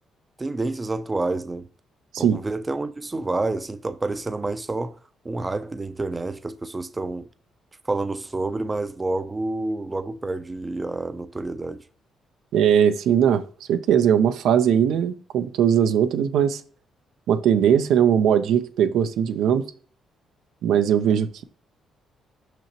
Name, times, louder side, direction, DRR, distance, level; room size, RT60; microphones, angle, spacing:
voice 1, 0.4-1.7 2.2-5.0 5.2-7.3 7.9-11.8, right 2 dB, 20° right, 0.5 m, -28 dB
voice 2, 12.5-13.4 13.7-16.6 17.3-19.6 20.6-21.4, right 8 dB, 80° right, 0.5 m, -20 dB
5.9 x 5.7 x 2.9 m
cardioid pair, 90°, 0 cm